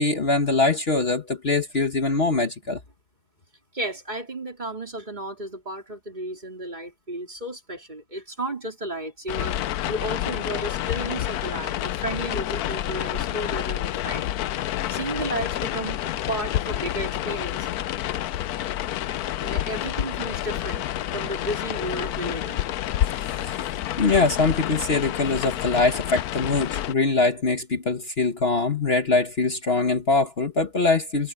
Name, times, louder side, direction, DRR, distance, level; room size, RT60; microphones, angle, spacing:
voice 1, 0.0-2.8 23.3-23.7 24.0-31.3, left 3 dB, 45° left, 1.6 m, -23 dB
voice 2, 3.7-14.6 14.9-16.0 16.3-17.7 19.4-20.9 21.1-22.7, right 1 dB, 30° right, 3.4 m, -33 dB
sound 1, 9.3-26.9, left 12 dB, 85° left, 1.2 m, -29 dB
omnidirectional pair, 1.6 m